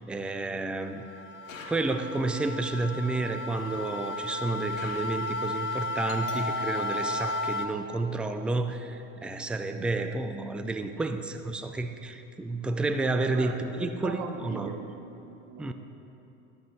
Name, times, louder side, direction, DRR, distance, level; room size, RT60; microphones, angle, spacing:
voice 1, 0.1-1.0 1.7-14.7 15.6-15.7, right 2 dB, 5° right, 8 dB, 0.3 m, -31 dB
sound 1, 0.8-7.7, left 1 dB, 30° left, 0.9 m, -34 dB
sound 2, 1.4-2.4 4.7-5.7, left 4 dB, 85° left, 1.1 m, -47 dB
Doorbell, 6.1-9.4, left 3 dB, 50° left, 1.4 m, -44 dB
voice 2, 13.3-15.7, right 6 dB, 45° right, 4 dB, 1.0 m, -40 dB
11.0 x 8.1 x 4.5 m, 2.9 s
hypercardioid pair, 90°, 38 cm